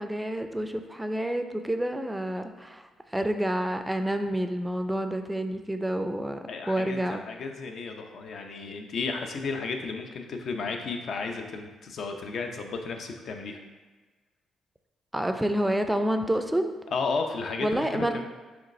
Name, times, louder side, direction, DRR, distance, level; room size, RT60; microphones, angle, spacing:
voice 1, 0.0-7.2 15.1-16.7 17.6-18.2, right 1 dB, 10° right, 7 dB, 0.4 m, -28 dB
voice 2, 6.5-13.6 16.9-18.2, left 4 dB, 60° left, 4 dB, 0.5 m, -33 dB
5.0 x 3.4 x 3.1 m, 1.4 s
cardioid pair, 90°, 0 cm